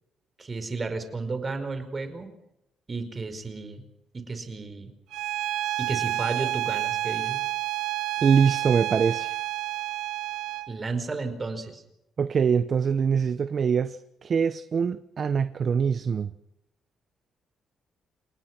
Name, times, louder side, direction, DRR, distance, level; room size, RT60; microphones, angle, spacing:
voice 1, 0.4-2.3 2.9-3.8 4.1-4.9 5.8-7.4 10.7-11.8, right 3 dB, 30° right, 4.9 m, -33 dB
Bowed string instrument, 5.1-10.7, right 15 dB, 85° right, 1.3 m, -29 dB
voice 2, 8.2-9.4 12.2-16.3, right 6 dB, 50° right, 1.0 m, -24 dB
29.5 x 18.0 x 6.1 m
cardioid pair, 90°, 0 cm